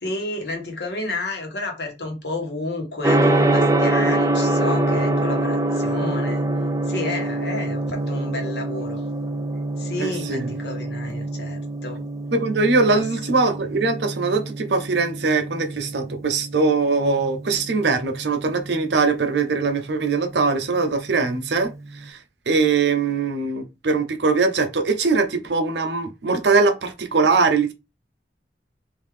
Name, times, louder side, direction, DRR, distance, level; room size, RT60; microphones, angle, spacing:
voice 1, 0.0-6.4 6.9-9.0 9.8-12.0 12.9-13.0, left 2 dB, 65° left, 1.3 m, -31 dB
Gong, 3.0-22.0, right 1 dB, 15° right, 0.4 m, -25 dB
voice 2, 10.0-10.5 12.3-22.2 22.5-27.7, right 4 dB, 70° right, 0.6 m, -21 dB
3.5 x 2.7 x 3.2 m
head